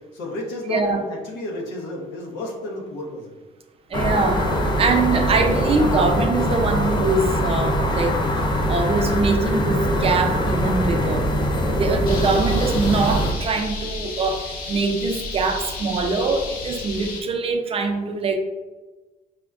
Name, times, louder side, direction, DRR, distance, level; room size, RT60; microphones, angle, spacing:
voice 1, 0.1-3.3, left 1 dB, 90° left, -1 dB, 0.9 m, -31 dB
voice 2, 0.7-1.0 3.9-4.5 4.8-11.3 11.7-18.4, right 3 dB, 35° right, 4 dB, 0.4 m, -23 dB
sound 1, 3.9-13.3, equal, 30° left, 0.5 m, -22 dB
sound 2, 12.0-17.2, left 3 dB, 65° left, 0.8 m, -32 dB
4.8 x 2.2 x 2.4 m, 1.2 s
cardioid pair, 110°, 17 cm